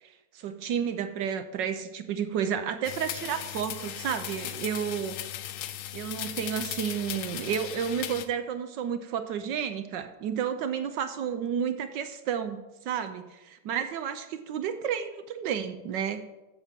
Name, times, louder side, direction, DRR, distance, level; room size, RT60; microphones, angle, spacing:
voice 1, 0.0-5.2 5.9-16.3, right 8 dB, 70° right, 9 dB, 1.2 m, -31 dB
sound 1, 2.8-8.3, left 12 dB, 85° left, 1.5 m, -37 dB
8.0 x 7.2 x 7.3 m, 1.1 s
omnidirectional pair, 2.3 m